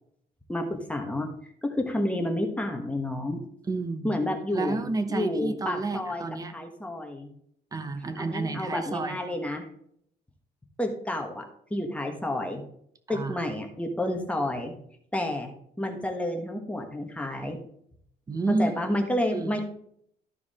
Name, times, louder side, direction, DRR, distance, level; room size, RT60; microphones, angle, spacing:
voice 1, 0.5-1.3 1.6-3.4 4.0-4.8 5.1-6.2 6.5-7.3 8.2-9.7 10.8-11.4 11.7-12.6 13.1-14.7 15.1-17.6 18.6-19.6, left 1 dB, 5° left, 2 dB, 1.2 m, -30 dB
voice 2, 3.6-4.2 4.5-6.5 7.7-9.2 13.1-13.4 18.3-18.7 19.3-19.6, right 3 dB, 20° right, 9 dB, 0.9 m, -30 dB
13.5 x 4.8 x 3.6 m, 0.67 s
cardioid pair, 155°, 17 cm